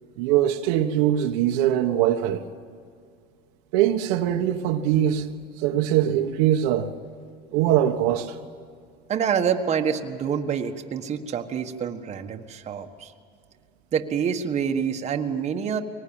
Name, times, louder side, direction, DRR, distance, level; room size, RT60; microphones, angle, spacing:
voice 1, 0.2-2.5 3.7-5.3 5.6-6.9 7.5-8.4, right 11 dB, 80° right, 1.4 m, -22 dB
voice 2, 9.1-13.1 13.9-15.8, right 7 dB, 35° right, 1.5 m, -27 dB
23.5 x 20.0 x 8.9 m
supercardioid pair, 120°, 19 cm